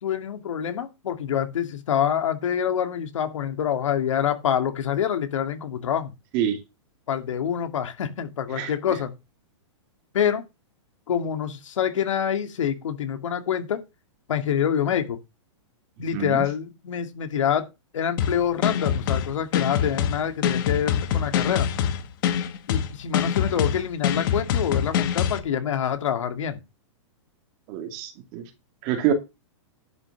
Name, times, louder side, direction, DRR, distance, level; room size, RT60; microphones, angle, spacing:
voice 1, 0.0-6.1 7.1-9.1 10.1-10.4 11.1-13.8 14.3-15.2 16.0-17.7 17.9-21.7 22.7-26.6, left 9 dB, 80° left, 2.4 m, -26 dB
voice 2, 16.1-16.4 27.7-28.4 28.8-29.1, right 10 dB, 30° right, 2.4 m, -26 dB
sound 1, 18.2-25.4, left 8 dB, 45° left, 1.6 m, -24 dB
11.0 x 5.6 x 6.7 m
supercardioid pair, 165°, 16 cm